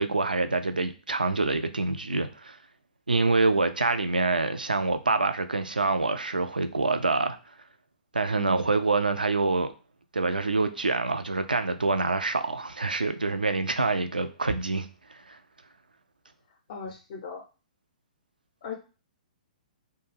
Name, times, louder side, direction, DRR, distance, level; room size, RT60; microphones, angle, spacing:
voice 1, 0.0-2.6 3.1-7.4 8.1-9.7 10.1-14.9 15.3-15.4, right 3 dB, 85° right, 0.3 m, -26 dB
voice 2, 8.3-8.7 16.5-17.4 18.6-18.7, left 5 dB, 50° left, 0.5 m, -39 dB
2.4 x 2.2 x 3.2 m
figure-of-eight pair, 115°, 5 cm